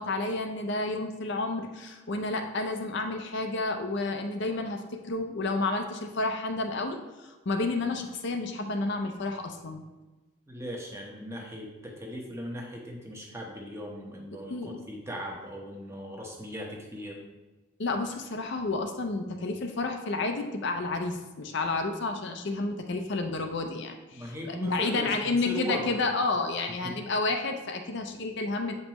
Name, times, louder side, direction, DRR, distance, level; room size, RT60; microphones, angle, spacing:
voice 1, 0.0-9.8 14.5-14.8 17.8-28.7, left 3 dB, 55° left, 4 dB, 0.5 m, -30 dB
voice 2, 10.5-17.2 24.1-26.0 26.8-26.9, equal, 10° right, -1 dB, 1.0 m, -38 dB
8.1 x 5.4 x 3.0 m, 1.2 s
head